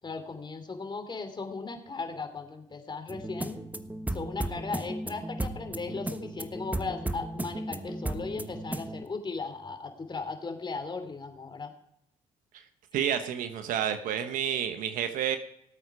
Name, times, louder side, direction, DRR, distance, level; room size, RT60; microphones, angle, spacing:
voice 1, 0.0-3.6 4.1-11.7, left 4 dB, 35° left, 6 dB, 3.0 m, -37 dB
sound 1, 3.1-9.1, right 1 dB, 10° right, 1.2 m, -35 dB
voice 2, 12.9-15.4, right 9 dB, 75° right, 8 dB, 1.1 m, -29 dB
18.5 x 8.3 x 4.9 m, 0.75 s
supercardioid pair, 60°, 14 cm